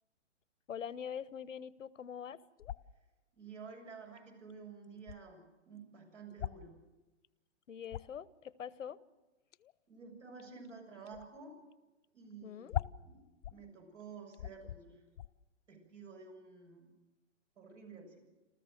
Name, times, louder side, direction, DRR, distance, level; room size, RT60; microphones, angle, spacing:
voice 1, 0.7-2.4 7.7-9.0 12.4-12.7, left 8 dB, 85° left, 18 dB, 1.0 m, -44 dB
sound 1, 2.6-3.0 4.2-4.3 4.5-4.6 4.8-5.2 6.3-6.7 7.2-7.3 7.6-8.2 9.5-9.7 10.4-10.7 11.1-11.3 11.7-11.8 12.0-12.1 12.7-13.6 14.0-14.1 14.3-14.8 15.1-15.3, left 11 dB, 70° left, 0.6 m, -41 dB
voice 2, 3.3-6.8 9.9-11.6 12.1-13.2 13.5-15.0 15.7-16.9 17.6-18.2, right 5 dB, 75° right, 4 dB, 7.5 m, -51 dB
28.0 x 14.0 x 7.7 m, 1.1 s
hypercardioid pair, 135°, 37 cm